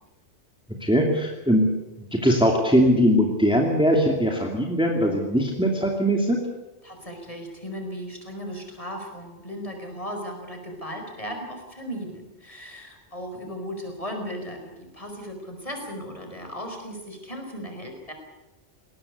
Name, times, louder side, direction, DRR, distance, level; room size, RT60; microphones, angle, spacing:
voice 1, 0.8-1.7 2.1-6.4, equal, 5° right, 1 dB, 2.6 m, -21 dB
voice 2, 6.8-18.1, equal, 30° left, 3 dB, 5.1 m, -36 dB
20.5 x 18.0 x 8.4 m, 1.1 s
omnidirectional pair, 1.2 m